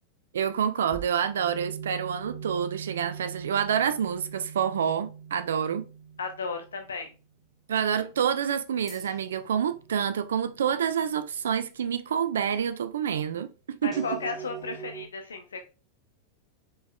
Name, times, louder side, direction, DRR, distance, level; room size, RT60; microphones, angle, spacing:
voice 1, 0.3-5.8 7.7-14.1, right 8 dB, 65° right, 0.4 m, -28 dB
sound 1, 0.9-7.2 8.9-11.6 13.9-15.1, right 7 dB, 10° left, 1.8 m, -42 dB
voice 2, 6.2-7.1 13.8-15.7, left 4 dB, 70° left, 0.5 m, -34 dB
4.8 x 4.6 x 2.2 m
figure-of-eight pair, 90°, 0 cm